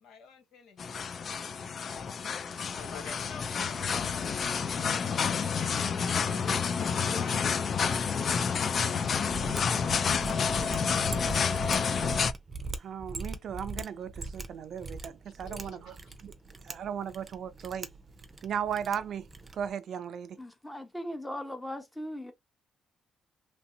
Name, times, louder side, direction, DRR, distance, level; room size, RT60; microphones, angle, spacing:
voice 1, 0.0-0.9 1.8-2.2 2.7-8.0 8.8-9.9 10.5-10.8 11.5-12.0 15.2-16.1, left 5 dB, 85° left, 1.0 m, -49 dB
sound 1, 0.8-12.3, left 6 dB, 50° left, 0.4 m, -29 dB
Mechanisms, 9.2-19.7, right 3 dB, 25° right, 0.6 m, -42 dB
voice 2, 12.8-16.0 16.2-16.3 16.6-17.9 18.4-19.3 19.5-20.4, right 8 dB, 65° right, 0.4 m, -36 dB
voice 3, 20.4-22.3, equal, 10° left, 0.9 m, -38 dB
2.9 x 2.7 x 2.7 m
cardioid pair, 90°, 0 cm